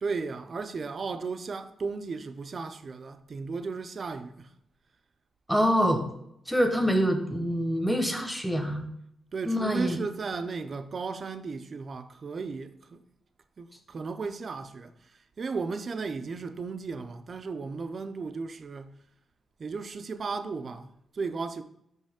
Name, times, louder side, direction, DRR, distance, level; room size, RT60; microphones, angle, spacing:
voice 1, 0.0-4.5 6.8-6.9 9.3-13.0 13.6-14.9 15.4-18.9 19.6-21.6, right 4 dB, 45° right, 0.5 m, -35 dB
voice 2, 5.5-6.0 6.5-8.9 9.4-10.0, equal, ahead, 1.0 m, -25 dB
5.5 x 5.3 x 3.6 m
cardioid pair, 90°, 0 cm